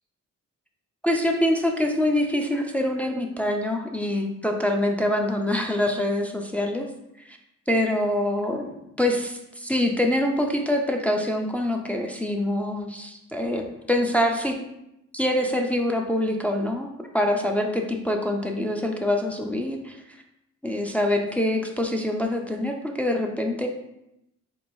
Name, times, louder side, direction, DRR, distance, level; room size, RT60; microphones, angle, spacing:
voice 1, 1.0-6.9 7.3-7.4 7.7-14.6 15.1-16.9 17.1-20.0 20.6-23.7, left 1 dB, 5° left, 2 dB, 0.3 m, -25 dB
3.9 x 3.0 x 2.6 m, 0.86 s
cardioid pair, 90°, 30 cm